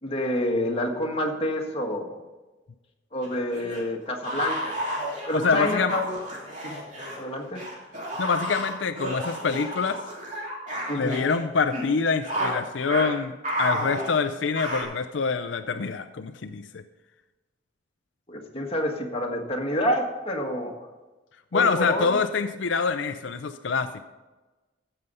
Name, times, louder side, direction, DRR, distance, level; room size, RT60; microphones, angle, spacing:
voice 1, 0.0-2.2 3.1-4.8 5.3-6.2 6.6-6.8 7.2-7.6 10.9-11.2 18.3-20.8 21.5-22.1, left 1 dB, 30° left, 1 dB, 1.6 m, -28 dB
sound 1, 3.2-7.2 7.5-11.4 11.7-11.8 12.2-12.6 12.9-13.1 13.4-14.8, right 1 dB, 40° right, 2.9 m, -31 dB
voice 2, 5.3-5.9 8.2-10.0 10.9-13.3 13.6-16.8 21.5-24.0, left 5 dB, 80° left, 9 dB, 0.5 m, -25 dB
15.0 x 6.8 x 5.5 m, 1.2 s
head